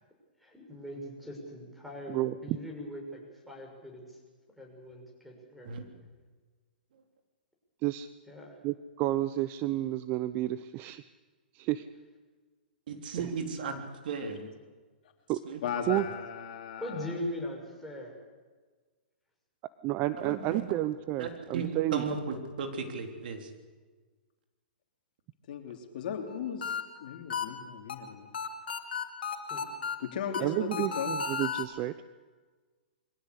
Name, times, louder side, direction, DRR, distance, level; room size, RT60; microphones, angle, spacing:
voice 1, 0.4-4.2 4.6-5.7 8.3-8.6 16.8-18.2 29.5-29.7 30.4-30.6, left 1 dB, ahead, 1 dB, 6.4 m, -41 dB
voice 2, 2.1-2.6 7.8-8.1 8.6-11.0 11.5-11.9 15.3-15.4 15.9-16.0 19.8-22.0 30.4-31.9, right 15 dB, 35° right, 14 dB, 0.7 m, -31 dB
voice 3, 12.9-14.5 15.4-16.1 20.2-20.6 21.2-23.5, right 5 dB, 65° right, 5 dB, 3.6 m, -36 dB
voice 4, 15.6-17.1 25.5-28.3 30.0-30.7 31.0-31.2, left 7 dB, 60° left, 4 dB, 3.3 m, -37 dB
sound 1, 26.3-31.6, left 5 dB, 75° left, 2.5 m, -35 dB
23.0 x 16.5 x 8.3 m, 1.4 s
hypercardioid pair, 130°, 5 cm